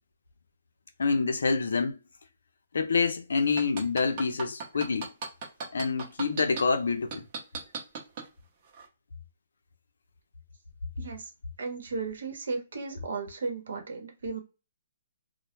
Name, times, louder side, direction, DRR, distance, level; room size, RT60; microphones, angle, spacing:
voice 1, 1.0-2.0 2.7-5.1 5.7-7.3, left 4 dB, 75° left, 0.5 m, -27 dB
sound 1, 3.4-6.6 7.1-8.3 8.7-8.8, right 5 dB, 25° right, 0.6 m, -35 dB
voice 2, 11.0-11.3 11.6-14.4, right 4 dB, 65° right, 0.9 m, -35 dB
2.1 x 2.1 x 3.0 m
hypercardioid pair, 180°, 0 cm